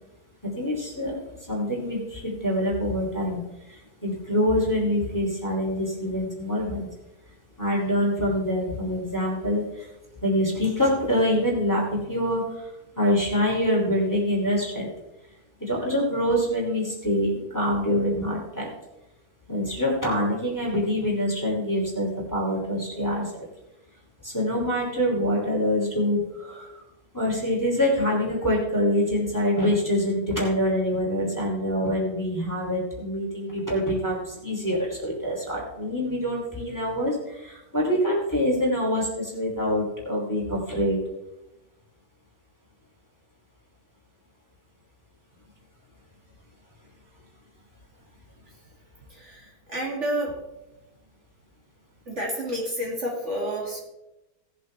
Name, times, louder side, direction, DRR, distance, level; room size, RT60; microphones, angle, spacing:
voice 1, 0.6-1.2 1.5-3.4 4.0-6.9 7.6-9.6 10.2-12.4 13.0-14.9 15.7-18.7 19.5-23.2 24.2-26.7 27.1-41.0, equal, 10° left, -4 dB, 2.7 m, -25 dB
voice 2, 49.1-50.4 52.1-53.8, equal, 45° right, -3 dB, 2.4 m, -30 dB
17.5 x 8.0 x 3.3 m, 0.96 s
omnidirectional pair, 1.8 m